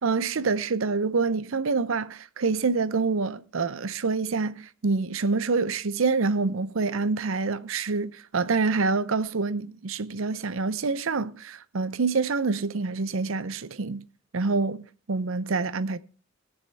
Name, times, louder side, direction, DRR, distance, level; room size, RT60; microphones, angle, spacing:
voice 1, 0.0-14.0 14.3-14.8 15.1-16.0, right 4 dB, 70° right, 0.6 m, -26 dB
18.5 x 7.0 x 3.4 m
head